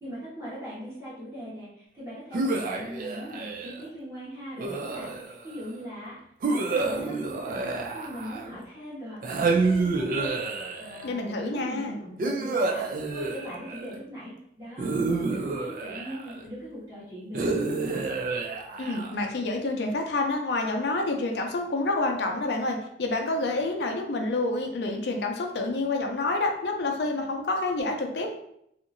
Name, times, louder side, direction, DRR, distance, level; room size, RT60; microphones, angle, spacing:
voice 1, 0.0-6.2 6.5-10.4 10.8-18.0, equal, 15° right, -13 dB, 1.1 m, -40 dB
sound 1, 2.3-3.9 4.6-5.5 6.4-8.6 9.2-11.1 12.2-14.0 14.8-16.4 17.3-19.3, right 3 dB, 50° right, 0.3 m, -29 dB
voice 2, 11.0-12.0 18.8-28.3, left 2 dB, 75° left, 2 dB, 0.5 m, -28 dB
2.8 x 2.5 x 2.5 m, 0.73 s
head